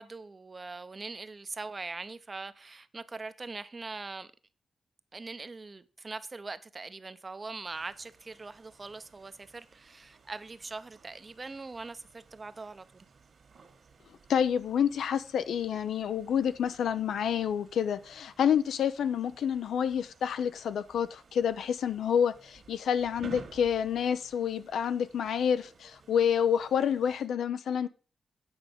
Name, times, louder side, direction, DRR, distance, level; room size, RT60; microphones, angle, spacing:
voice 1, 0.0-4.3 5.1-13.1, right 3 dB, 30° right, 0.7 m, -42 dB
sound 1, 7.7-27.3, right 5 dB, 55° right, 1.7 m, -55 dB
voice 2, 14.3-27.9, left 8 dB, 90° left, 0.7 m, -28 dB
8.9 x 5.1 x 6.9 m
wide cardioid pair, 115°, 0 cm